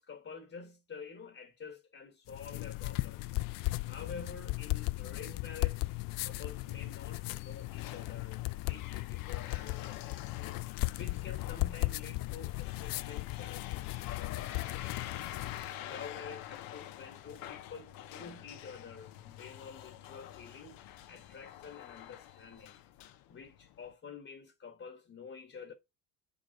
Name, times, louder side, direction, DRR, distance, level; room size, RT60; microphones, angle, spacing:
voice 1, 0.0-3.3 3.8-5.9 6.2-10.6 11.0-15.2 15.8-20.8 21.1-22.8 23.3-25.7, left 5 dB, 35° left, 1.3 m, -49 dB
sound 1, 2.3-15.7, left 21 dB, 70° left, 0.5 m, -36 dB
sound 2, 6.4-23.9, left 12 dB, 90° left, 0.8 m, -47 dB
7.8 x 3.8 x 5.2 m
cardioid pair, 95°, 34 cm